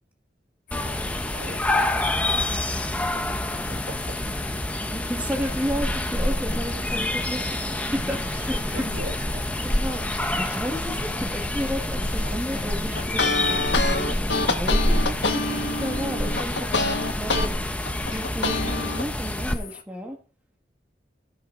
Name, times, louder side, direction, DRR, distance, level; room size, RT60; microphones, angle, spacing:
sound 1, 0.7-19.8, left 8 dB, 50° left, 1.6 m, -41 dB
sound 2, 0.7-19.5, left 1 dB, 10° left, 0.9 m, -27 dB
voice 1, 0.8-4.2 8.7-9.4, equal, 65° right, 4 dB, 3.1 m, -41 dB
voice 2, 4.9-9.0 9.6-17.5 18.1-20.2, equal, 10° right, 1 dB, 1.7 m, -33 dB
sound 3, 12.9-17.5 17.9-19.0, left 3 dB, 80° left, 1.6 m, -26 dB
17.0 x 6.7 x 3.8 m, 0.38 s
head